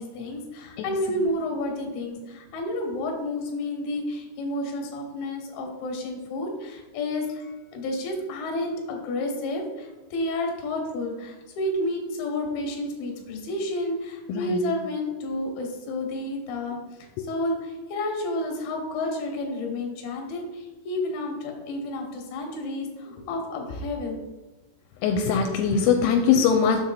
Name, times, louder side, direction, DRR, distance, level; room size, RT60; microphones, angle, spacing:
voice 1, 0.0-24.2, left 1 dB, 65° left, 2 dB, 2.7 m, -30 dB
voice 2, 0.8-1.2 14.3-14.6 17.2-17.3 25.0-26.8, left 6 dB, 85° left, 4 dB, 3.1 m, -22 dB
7.4 x 6.1 x 4.0 m, 1.2 s
omnidirectional pair, 5.8 m